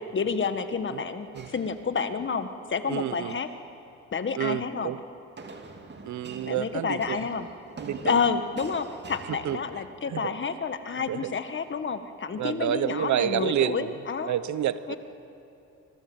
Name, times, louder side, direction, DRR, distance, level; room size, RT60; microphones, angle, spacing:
voice 1, 0.1-3.5 4.1-4.9 6.4-7.5 8.0-14.4 14.9-15.0, left 5 dB, 40° left, 9 dB, 1.6 m, -29 dB
sound 1, 1.3-2.4 3.1-3.6 5.4-10.2, right 3 dB, 35° right, 2.7 m, -46 dB
voice 2, 2.9-3.4 4.3-5.0 6.0-7.2 7.8-8.2 9.3-9.6 10.1-10.3 11.1-11.3 12.4-13.9 14.3-15.0, right 11 dB, 70° right, 15 dB, 1.0 m, -29 dB
25.0 x 22.0 x 8.1 m, 2.7 s
cardioid pair, 90°, 30 cm